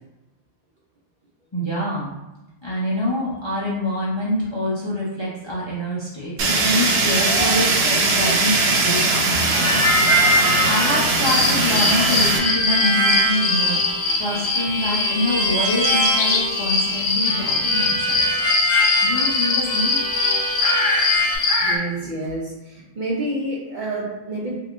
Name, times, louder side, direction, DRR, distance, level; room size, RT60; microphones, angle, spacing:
voice 1, 1.5-2.1 2.6-13.8 14.2-18.3 19.0-20.0, left 1 dB, 35° left, -7 dB, 0.5 m, -26 dB
Fire, 6.4-12.4, right 3 dB, 80° right, 0.3 m, -20 dB
Harmonica, 9.4-21.4, equal, 15° left, 1.0 m, -23 dB
sound 1, 11.2-21.8, left 3 dB, 75° left, 0.9 m, -23 dB
voice 2, 21.6-24.5, right 1 dB, 50° right, -4 dB, 0.6 m, -28 dB
3.5 x 2.9 x 2.5 m, 1.0 s
omnidirectional pair, 1.3 m